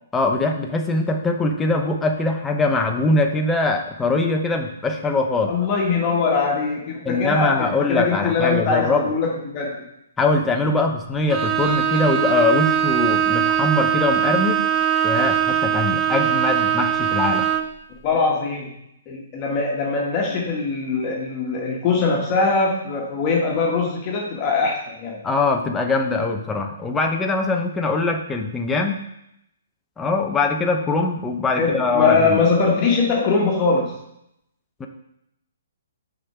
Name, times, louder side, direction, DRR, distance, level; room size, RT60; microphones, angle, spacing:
voice 1, 0.1-5.5 7.0-9.1 10.2-14.7 15.0-17.5 25.2-29.0 30.0-32.4 34.8-34.9, left 3 dB, 10° left, 2 dB, 1.0 m, -22 dB
voice 2, 5.5-9.8 18.0-18.7 19.1-25.2 31.5-34.0, left 4 dB, 30° left, -2 dB, 1.8 m, -22 dB
Bowed string instrument, 11.3-17.8, right 9 dB, 15° right, 0.7 m, -21 dB
6.8 x 5.2 x 5.9 m, 0.79 s
figure-of-eight pair, 130°, 0 cm